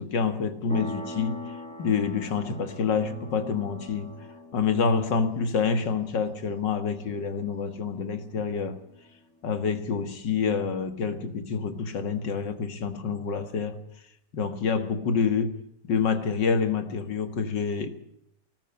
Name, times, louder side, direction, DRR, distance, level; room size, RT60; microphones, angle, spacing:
voice 1, 0.0-1.4 1.8-4.1 4.5-8.8 9.4-13.8 14.3-15.6 15.9-17.9, left 5 dB, 85° left, 8 dB, 2.4 m, -27 dB
sound 1, 0.7-9.0, left 1 dB, 5° left, 2.3 m, -43 dB
19.0 x 13.5 x 9.8 m, 0.74 s
omnidirectional pair, 1.9 m